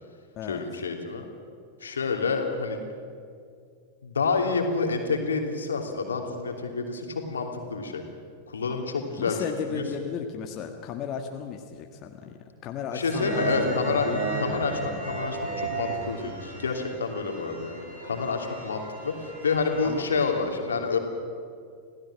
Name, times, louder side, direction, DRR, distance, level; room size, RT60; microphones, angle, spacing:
voice 1, 0.5-1.2 1.8-2.8 4.0-8.0 8.5-9.8 12.9-14.1 14.4-21.0, left 4 dB, 70° left, 3 dB, 3.0 m, -28 dB
voice 2, 9.3-14.4 19.8-20.1, left 7 dB, 35° left, 3 dB, 1.6 m, -35 dB
sound 1, 13.0-20.4, right 3 dB, 70° right, 6.6 m, -34 dB
27.0 x 17.0 x 7.6 m, 2.2 s
figure-of-eight pair, 90°, 0 cm